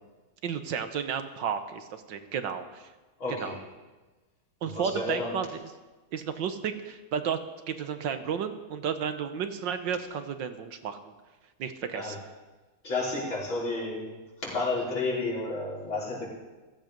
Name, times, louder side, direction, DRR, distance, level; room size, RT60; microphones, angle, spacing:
voice 1, 0.4-2.8 3.3-3.6 4.6-5.6 6.1-7.4 7.7-11.0 11.6-12.1, right 7 dB, 65° right, 9 dB, 1.6 m, -32 dB
voice 2, 3.2-3.6 4.6-5.3 11.9-12.2 12.8-14.2 14.4-16.3, left 2 dB, 70° left, -5 dB, 5.5 m, -31 dB
15.5 x 15.0 x 5.3 m, 1.2 s
omnidirectional pair, 2.3 m